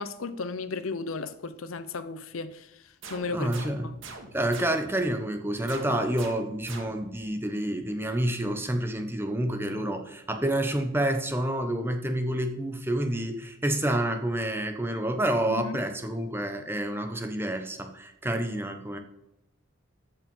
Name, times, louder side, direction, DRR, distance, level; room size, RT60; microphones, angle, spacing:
voice 1, 0.0-2.7 3.1-3.5 3.8-4.0 15.5-15.8, left 4 dB, 80° left, 0.8 m, -34 dB
sound 1, 3.0-5.1 5.7-7.2, right 3 dB, 65° right, 1.9 m, -44 dB
voice 2, 3.3-3.9 4.3-19.0, right 1 dB, 10° right, 1.0 m, -28 dB
14.5 x 5.7 x 5.5 m
head